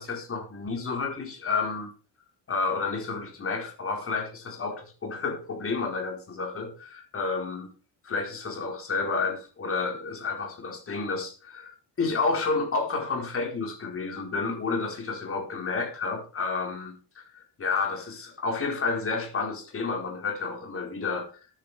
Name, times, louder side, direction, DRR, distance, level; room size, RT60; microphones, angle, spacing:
voice 1, 0.0-1.9 2.5-7.7 8.0-21.3, left 4 dB, 30° left, 2 dB, 4.6 m, -30 dB
13.0 x 10.5 x 5.0 m, 0.37 s
cardioid pair, 155°, 42 cm